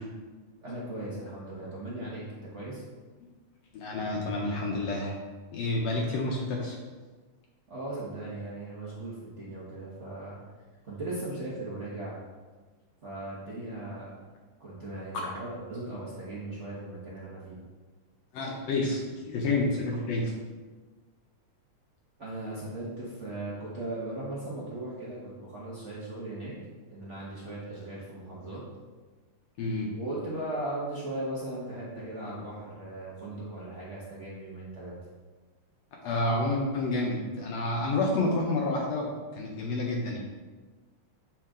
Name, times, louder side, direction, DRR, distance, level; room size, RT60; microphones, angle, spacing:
voice 1, 0.6-2.8 7.7-10.4 10.8-12.2 13.0-14.2 14.6-17.6 22.2-26.5 26.9-28.6 29.9-34.9, right 1 dB, 70° right, -6 dB, 0.6 m, -38 dB
voice 2, 3.7-5.2 5.5-6.8 15.2-15.3 18.3-19.0 19.3-20.3 29.6-29.9 36.0-40.2, left 2 dB, 70° left, -1 dB, 1.8 m, -29 dB
7.5 x 5.6 x 3.7 m, 1.3 s
omnidirectional pair, 3.3 m